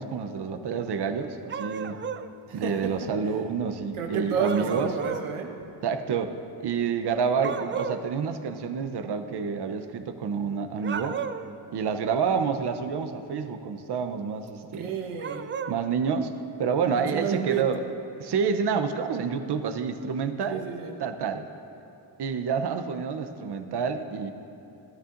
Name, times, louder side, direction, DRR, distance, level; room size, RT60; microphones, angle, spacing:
voice 1, 0.0-2.0 2.5-4.9 5.8-11.2 11.7-14.9 15.7-17.8 18.2-20.6 21.0-21.5 22.2-24.3, right 6 dB, 55° right, 8 dB, 0.8 m, -28 dB
sound 1, 1.5-2.3 4.4-5.3 7.4-8.0 10.8-11.5 15.2-15.8, right 6 dB, 25° right, 0.3 m, -33 dB
voice 2, 2.5-3.1 4.0-5.6 14.7-15.5 16.9-17.7 20.5-20.9, right 7 dB, 90° right, 2 dB, 1.2 m, -31 dB
16.0 x 12.5 x 2.6 m, 2.8 s
cardioid pair, 70°, 48 cm